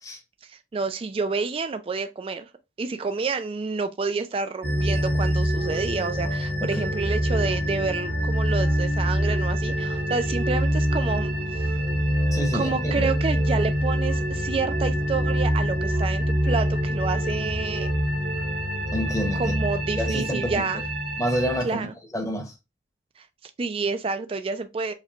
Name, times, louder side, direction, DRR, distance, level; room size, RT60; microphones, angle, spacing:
voice 1, 0.5-2.5 2.8-11.7 12.5-17.9 19.3-20.8 21.6-21.9 23.2-24.9, right 4 dB, 30° right, 0.3 m, -29 dB
sound 1, 4.6-21.6, equal, 60° right, 0.8 m, -25 dB
voice 2, 12.3-13.1 18.9-19.6 20.0-20.6 21.2-21.9 22.1-22.5, equal, 20° left, 0.9 m, -28 dB
4.8 x 2.2 x 2.8 m
head